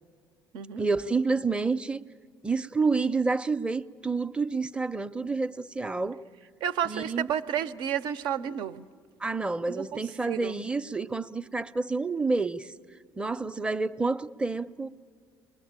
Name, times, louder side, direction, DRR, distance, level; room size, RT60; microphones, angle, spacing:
voice 1, 0.8-2.0 2.4-6.2 6.9-7.3 9.2-12.7 13.2-14.9, right 4 dB, 15° right, 0.6 m, -29 dB
voice 2, 6.6-8.9 9.7-10.0 10.3-10.6, right 9 dB, 75° right, 0.8 m, -31 dB
30.0 x 21.5 x 8.8 m
supercardioid pair, 90°, 8 cm